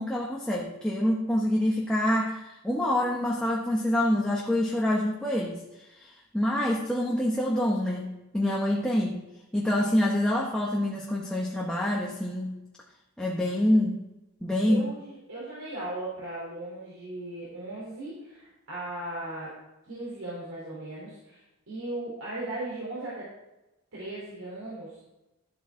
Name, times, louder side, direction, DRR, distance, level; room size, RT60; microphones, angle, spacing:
voice 1, 0.0-5.6 6.0-9.2 9.5-12.6 13.2-14.0 14.4-14.8, left 1 dB, 5° left, -3 dB, 1.0 m, -26 dB
voice 2, 14.6-19.5 19.8-23.3 23.9-25.0, right 2 dB, 75° right, -7 dB, 3.5 m, -37 dB
12.5 x 8.2 x 3.7 m, 0.98 s
head